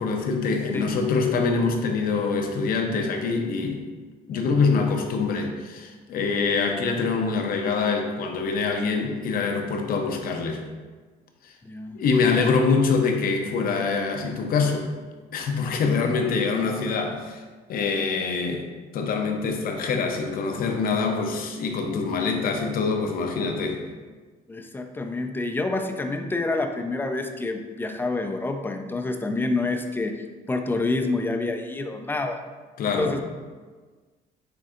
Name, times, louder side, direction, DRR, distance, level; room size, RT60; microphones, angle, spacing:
voice 1, 0.0-3.8 4.3-10.6 11.9-14.9 15.3-17.4 17.7-18.6 18.9-23.8 32.8-33.1, left 4 dB, 60° left, 3 dB, 0.7 m, -24 dB
voice 2, 11.6-12.0 24.5-32.4 33.0-33.2, left 2 dB, 10° left, 5 dB, 0.4 m, -28 dB
7.7 x 2.6 x 2.5 m, 1.4 s
cardioid pair, 110°, 17 cm